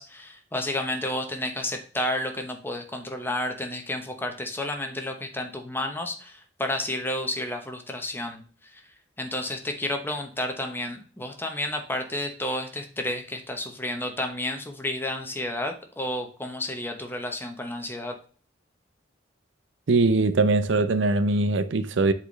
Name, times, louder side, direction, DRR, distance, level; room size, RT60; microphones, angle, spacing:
voice 1, 0.0-8.8 9.2-18.2, left 1 dB, 10° left, 0.9 m, -31 dB
voice 2, 19.9-22.1, right 3 dB, 80° right, 0.6 m, -21 dB
7.8 x 4.2 x 3.2 m
head